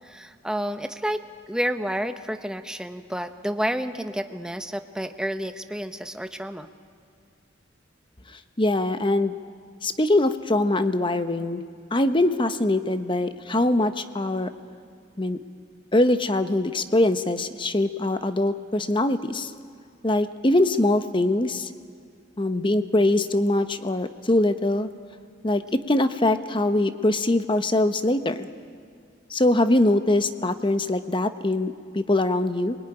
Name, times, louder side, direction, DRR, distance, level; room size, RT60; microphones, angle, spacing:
voice 1, 0.0-6.7, equal, 5° right, 8 dB, 1.0 m, -30 dB
voice 2, 8.3-9.3 9.8-11.6 11.9-14.5 15.2-15.4 15.9-19.5 20.0-21.7 22.4-24.9 25.4-28.5 29.3-32.8, left 1 dB, 25° left, 10 dB, 1.0 m, -23 dB
26.5 x 22.0 x 9.9 m, 2.3 s
head